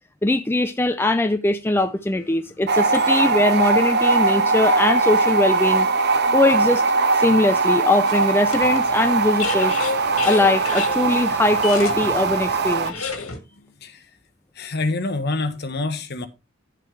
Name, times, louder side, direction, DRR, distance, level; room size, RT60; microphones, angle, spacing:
voice 1, 0.2-5.9 6.3-6.8 7.1-9.8 10.2-13.1, left 2 dB, 10° left, 0.4 m, -21 dB
sound 1, 1.8-3.5 4.2-4.3 8.1-13.4, left 5 dB, 80° left, 2.0 m, -32 dB
sound 2, 2.7-12.9, right 3 dB, 50° right, 0.8 m, -20 dB
voice 2, 13.5-14.1 14.5-16.3, left 2 dB, 50° left, 1.3 m, -27 dB
11.0 x 7.5 x 3.3 m
head